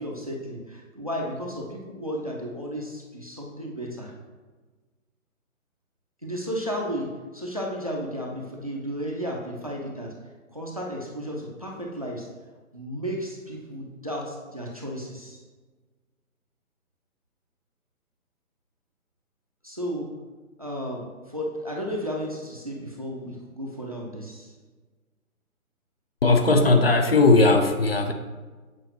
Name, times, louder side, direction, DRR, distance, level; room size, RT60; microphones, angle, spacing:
voice 1, 0.0-4.1 6.2-10.1 10.5-12.3 12.7-15.4 19.6-20.1 20.6-24.5, equal, 25° right, -1 dB, 0.5 m, -33 dB
voice 2, 26.2-28.1, left 3 dB, 45° left, 5 dB, 0.5 m, -18 dB
7.8 x 4.4 x 3.0 m, 1.3 s
figure-of-eight pair, 155°, 43 cm